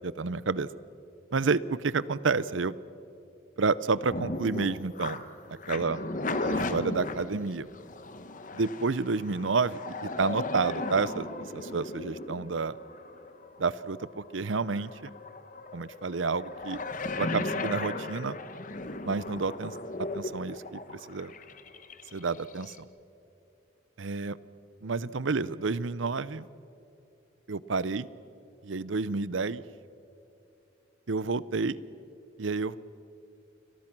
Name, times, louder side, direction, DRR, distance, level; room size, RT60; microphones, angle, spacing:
voice 1, 0.2-0.7 1.3-2.7 3.6-5.2 5.5-6.0 6.4-7.7 8.5-11.3 11.5-12.8 13.6-15.1 15.7-16.8 17.1-18.4 19.0-19.7 20.1-21.3 22.1-22.9 24.0-24.4 24.8-26.5 27.5-28.1 28.6-29.6 31.1-31.8 32.4-32.8, right 4 dB, 80° right, 18 dB, 0.7 m, -30 dB
sound 1, 4.1-22.8, left 2 dB, 40° left, 1.2 m, -36 dB
30.0 x 22.5 x 6.1 m, 2.8 s
head